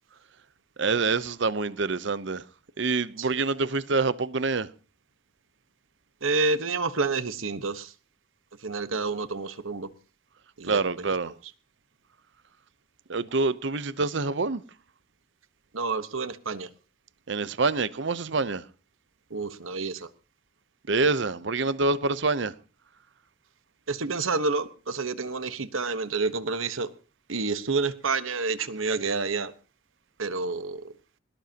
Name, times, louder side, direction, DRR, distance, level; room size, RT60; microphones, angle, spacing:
voice 1, 0.8-2.4 2.8-4.7 10.7-11.3 13.1-14.6 17.3-18.6 20.9-22.5, right 3 dB, 65° right, 0.7 m, -26 dB
voice 2, 6.2-7.7 8.6-9.9 10.6-10.8 15.7-16.7 19.3-19.9 23.9-26.9 27.3-29.5 30.2-30.8, right 3 dB, 85° right, 1.2 m, -28 dB
21.0 x 19.0 x 2.9 m
head